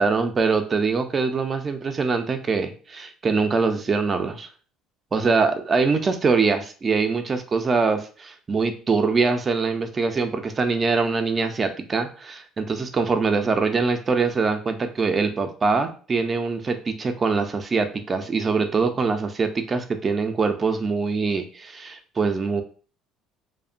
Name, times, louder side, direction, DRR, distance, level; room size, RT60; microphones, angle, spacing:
voice 1, 0.0-4.5 5.1-22.6, right 4 dB, 30° right, 7 dB, 0.4 m, -23 dB
2.8 x 2.1 x 2.5 m, 0.38 s
cardioid pair, 110°, 0 cm